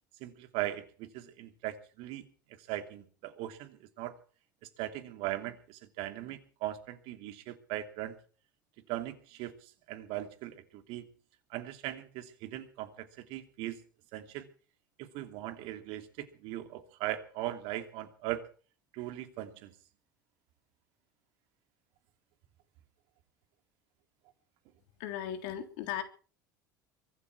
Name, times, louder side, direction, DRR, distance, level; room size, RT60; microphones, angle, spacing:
voice 1, 0.2-2.2 2.7-4.1 4.8-8.2 8.9-11.1 11.5-13.8 14.1-14.5 15.0-18.5 18.9-19.7, right 14 dB, 65° right, 8 dB, 2.9 m, -39 dB
voice 2, 25.0-26.0, left 10 dB, 65° left, 7 dB, 3.5 m, -37 dB
23.5 x 12.5 x 4.8 m, 0.40 s
hypercardioid pair, 75°, 10 cm